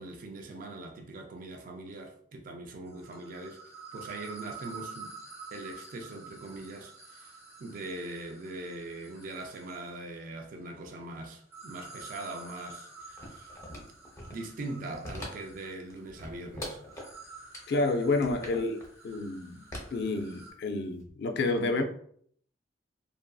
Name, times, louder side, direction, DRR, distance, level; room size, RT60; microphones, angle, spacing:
voice 1, 0.0-3.6 3.9-5.2 5.5-13.5 14.3-16.8, right 2 dB, 45° right, 0.3 m, -41 dB
sound 1, 2.9-10.0 11.4-20.5, right 4 dB, 15° right, 0.9 m, -49 dB
sound 2, 13.2-14.5 14.9-15.6 15.9-17.1 17.5-17.6 18.1-18.9 19.7-20.7 21.0-21.1, left 1 dB, 15° left, 0.6 m, -42 dB
voice 2, 17.7-19.6 19.9-21.8, left 2 dB, 60° left, 0.3 m, -29 dB
2.6 x 2.5 x 2.2 m
head